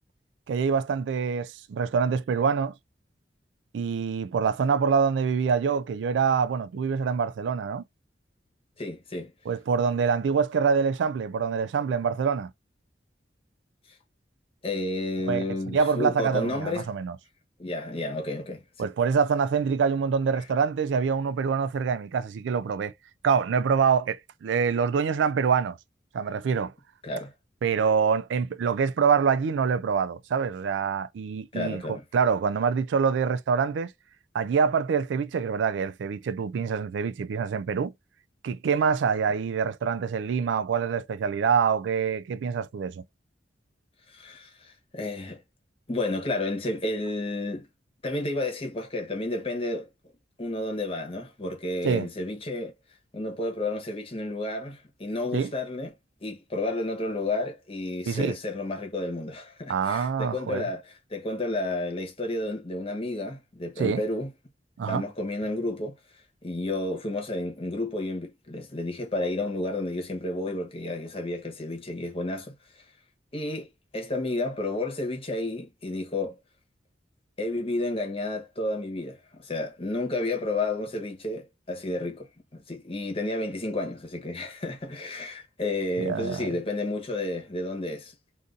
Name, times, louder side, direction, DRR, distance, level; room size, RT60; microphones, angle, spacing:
voice 1, 0.5-2.7 3.7-7.8 9.5-12.5 15.3-17.2 18.8-22.9 23.2-25.8 26.1-26.7 27.6-33.9 34.3-37.9 38.4-43.0 51.8-52.1 55.3-55.5 58.1-58.4 59.7-60.7 63.8-64.0 64.8-65.0 86.0-86.5, right 6 dB, 90° right, 0.3 m, -25 dB
voice 2, 8.8-9.3 14.6-16.9 17.6-18.9 27.0-27.3 31.5-32.0 44.1-45.4 45.9-47.7 48.0-49.9 50.4-52.7 53.1-55.9 56.2-64.3 64.9-66.0 66.4-72.5 73.3-76.4 77.4-82.3 82.5-88.1, left 2 dB, 30° left, 1.1 m, -31 dB
2.6 x 2.6 x 3.7 m
head